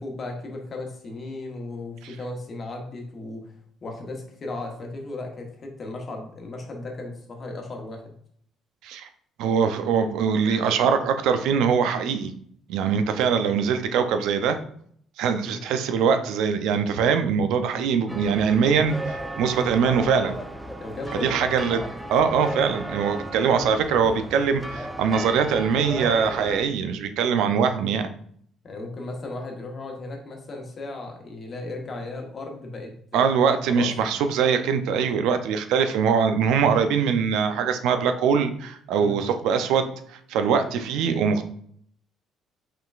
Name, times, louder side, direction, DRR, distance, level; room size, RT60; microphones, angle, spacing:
voice 1, 0.0-3.5 3.8-8.1 15.4-15.6 20.8-21.5 28.6-33.2 33.7-33.9 38.9-39.2, left 2 dB, 35° left, 1 dB, 1.0 m, -36 dB
voice 2, 9.4-12.3 12.7-14.6 15.2-20.4 21.1-21.8 22.1-28.1 33.1-41.5, right 6 dB, 85° right, 8 dB, 0.5 m, -22 dB
sound 1, 18.1-26.6, right 1 dB, ahead, 0.4 m, -35 dB
5.6 x 3.8 x 2.4 m, 0.64 s
cardioid pair, 135°, 0 cm